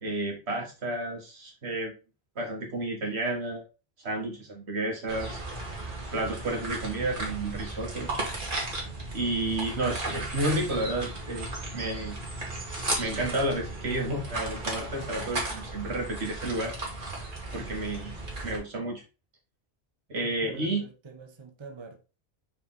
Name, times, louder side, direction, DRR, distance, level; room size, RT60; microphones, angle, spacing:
voice 1, 0.0-1.9 2.4-3.6 4.0-5.4 6.1-8.1 9.1-11.5 11.7-12.2 13.0-16.7 17.5-18.2 18.4-19.0 20.1-20.9, right 2 dB, 85° right, 2.0 m, -31 dB
sound 1, 5.1-18.6, right 2 dB, 50° right, 2.0 m, -35 dB
voice 2, 20.2-22.0, right 4 dB, 30° right, 0.9 m, -45 dB
5.8 x 4.3 x 3.8 m
omnidirectional pair, 1.1 m